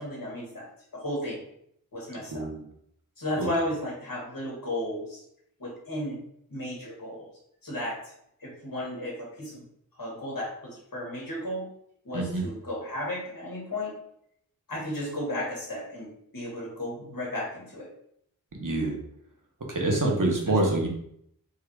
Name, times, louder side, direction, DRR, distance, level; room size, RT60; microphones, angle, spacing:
voice 1, 0.0-1.4 1.9-2.5 3.2-5.2 5.6-6.2 6.5-7.3 7.6-8.1 8.4-9.7 10.0-11.7 12.1-13.9 14.7-17.9 20.5-20.6, left 1 dB, 65° left, -4 dB, 1.8 m, -34 dB
voice 2, 2.3-2.6 3.4-3.5 12.1-12.4 18.5-18.9 19.7-20.9, right 2 dB, 55° right, 0 dB, 1.2 m, -26 dB
3.8 x 2.8 x 4.7 m, 0.71 s
wide cardioid pair, 45°, 37 cm